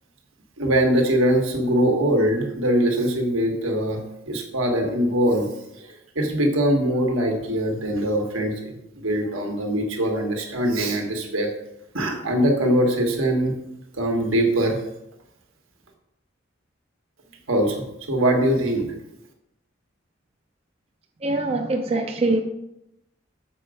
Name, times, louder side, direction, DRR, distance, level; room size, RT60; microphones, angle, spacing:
voice 1, 0.6-5.5 6.1-11.5 11.9-13.5 14.0-14.8 17.5-18.9, right 1 dB, 80° right, 1.5 m, -22 dB
voice 2, 21.2-22.4, right 2 dB, 30° right, 0.5 m, -23 dB
7.0 x 5.2 x 4.9 m
head